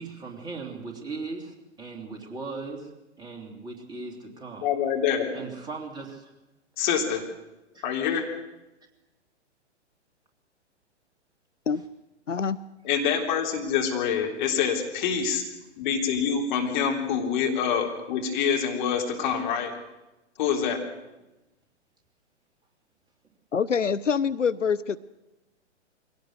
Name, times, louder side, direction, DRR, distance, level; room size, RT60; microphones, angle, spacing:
voice 1, 0.0-2.9 3.2-4.7 5.3-6.3 7.7-7.8 15.6-15.7, right 4 dB, 10° right, 1 dB, 3.2 m, -38 dB
voice 2, 4.6-5.4 6.8-7.2 7.8-8.3 12.8-15.4 15.8-19.7 20.4-20.8, left 7 dB, 40° left, 2 dB, 3.6 m, -26 dB
voice 3, 12.3-12.6 23.5-25.0, left 6 dB, 85° left, 17 dB, 0.7 m, -25 dB
23.0 x 17.5 x 6.6 m, 1.0 s
figure-of-eight pair, 115°, 36 cm